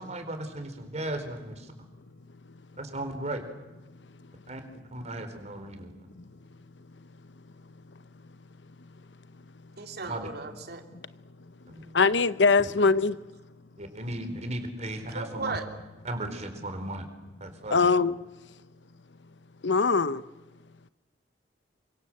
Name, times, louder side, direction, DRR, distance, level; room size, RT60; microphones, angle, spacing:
voice 1, 0.0-1.7 2.8-3.4 4.5-5.9 10.1-10.3 11.7-11.9 12.6-12.7 13.8-15.6 16.0-17.1 17.4-17.9, right 1 dB, 40° right, 4.4 m, -36 dB
voice 2, 9.8-10.8 15.1-15.6, right 3 dB, 60° right, 3.4 m, -36 dB
voice 3, 11.9-13.2 17.7-18.2 19.6-20.2, left 4 dB, 80° left, 0.9 m, -22 dB
28.0 x 25.0 x 7.9 m
head